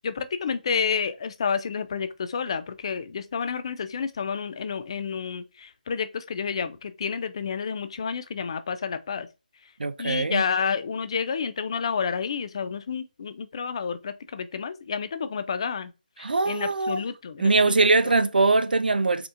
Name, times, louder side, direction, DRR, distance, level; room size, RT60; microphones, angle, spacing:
voice 1, 0.0-9.3 10.0-15.9 16.5-17.7, left 6 dB, 35° left, 0.3 m, -30 dB
voice 2, 9.8-10.4 16.2-17.0 17.4-19.3, right 3 dB, 75° right, 0.4 m, -22 dB
4.3 x 2.4 x 2.5 m
figure-of-eight pair, 160°, 5 cm